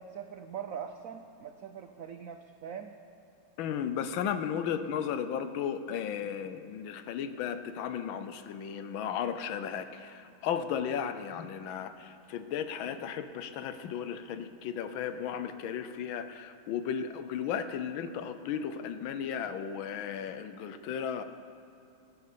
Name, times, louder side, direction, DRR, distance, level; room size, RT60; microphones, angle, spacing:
voice 1, 0.0-2.9, right 8 dB, 90° right, 7 dB, 0.7 m, -42 dB
voice 2, 3.6-21.2, left 8 dB, 75° left, 10 dB, 1.5 m, -35 dB
16.0 x 9.3 x 6.7 m, 2.8 s
omnidirectional pair, 2.2 m